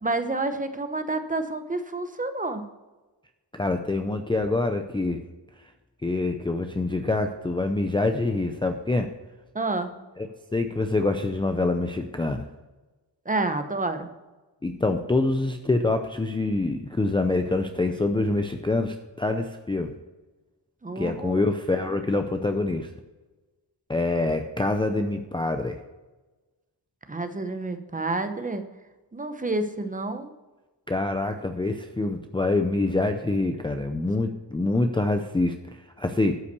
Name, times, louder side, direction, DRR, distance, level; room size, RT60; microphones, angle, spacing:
voice 1, 0.0-2.6 9.5-10.0 13.3-14.1 20.8-21.4 27.1-28.6 29.1-30.3, right 2 dB, 20° right, 8 dB, 0.9 m, -29 dB
voice 2, 3.5-5.2 6.0-9.1 10.2-10.3 10.5-12.5 14.6-19.9 21.0-22.9 23.9-25.8 30.9-36.4, left 2 dB, 10° left, 5 dB, 0.5 m, -25 dB
12.5 x 5.8 x 6.7 m, 1.2 s
wide cardioid pair, 160°, 44 cm